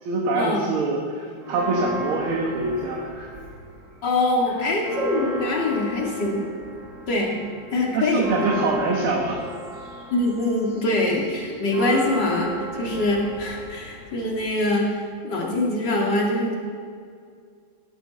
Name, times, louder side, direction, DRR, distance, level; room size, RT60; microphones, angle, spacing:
voice 1, 0.0-3.4 7.9-9.5, right 3 dB, 75° right, 0 dB, 2.2 m, -25 dB
Church bell, 1.4-3.8 4.2-4.3 4.6-14.6, equal, 50° right, 3.9 m, -34 dB
voice 2, 4.0-6.5 7.1-7.4 7.7-8.3 10.1-16.5, left 2 dB, 50° left, -1 dB, 3.1 m, -24 dB
18.5 x 11.5 x 4.3 m, 2.2 s
omnidirectional pair, 2.3 m